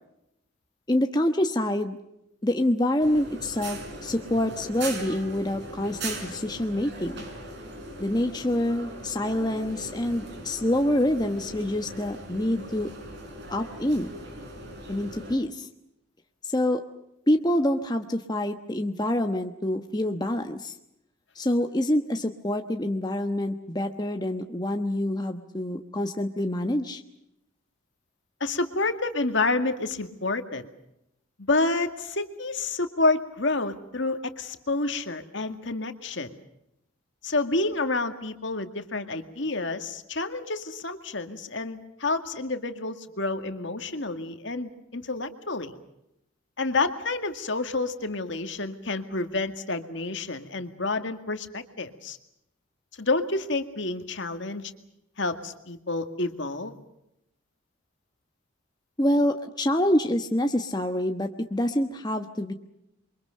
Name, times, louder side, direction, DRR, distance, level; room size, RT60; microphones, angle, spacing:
voice 1, 0.9-2.0 2.4-7.2 8.0-12.9 13.5-14.1 14.9-15.7 16.4-16.8 17.3-20.7 21.3-27.0 59.0-62.5, left 1 dB, 20° left, 5 dB, 1.1 m, -26 dB
sound 1, 3.0-15.4, right 1 dB, 55° right, 6.0 m, -40 dB
voice 2, 28.4-30.7 31.5-36.4 37.2-45.7 46.6-52.2 53.0-54.7 55.2-56.8, left 3 dB, 60° left, 7 dB, 2.1 m, -29 dB
28.0 x 24.0 x 6.6 m, 0.82 s
head